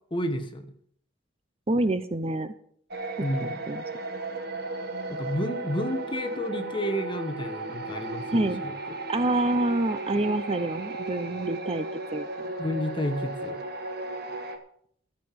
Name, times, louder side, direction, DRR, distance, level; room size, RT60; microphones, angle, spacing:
voice 1, 0.1-0.7 3.2-3.6 5.1-8.7 12.6-13.6, equal, 25° left, 6 dB, 1.5 m, -31 dB
voice 2, 1.7-2.5 3.4-3.8 8.3-8.6 9.1-11.9 12.1-12.5, right 2 dB, 30° right, 12 dB, 0.7 m, -27 dB
sound 1, 2.9-14.6, right 2 dB, 55° right, 1.6 m, -35 dB
13.0 x 7.6 x 7.6 m, 0.63 s
head